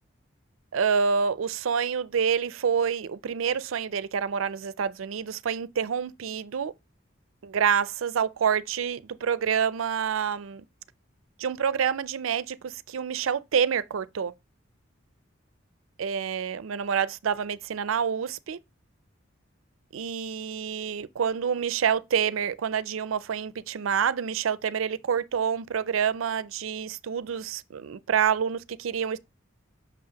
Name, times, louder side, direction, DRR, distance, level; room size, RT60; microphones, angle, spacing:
voice 1, 0.7-6.7 7.4-10.6 11.4-14.3 16.0-18.6 19.9-29.2, right 7 dB, 85° right, 0.4 m, -27 dB
6.1 x 5.7 x 2.8 m
head